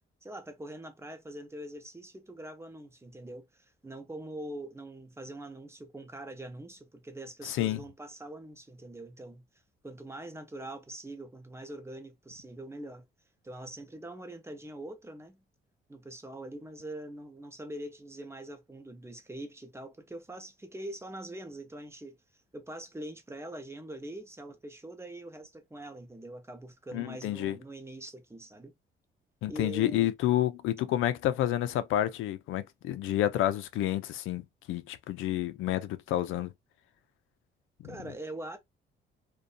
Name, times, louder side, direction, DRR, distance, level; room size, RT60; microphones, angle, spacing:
voice 1, 0.2-9.4 9.8-13.1 13.4-15.4 15.9-22.2 22.5-28.7 29.5-30.1 37.8-38.6, right 1 dB, 15° right, 0.7 m, -43 dB
voice 2, 7.5-7.8 26.9-27.6 29.4-34.4 34.7-36.5, left 13 dB, 85° left, 0.4 m, -29 dB
2.6 x 2.2 x 2.4 m
cardioid pair, 90°, 20 cm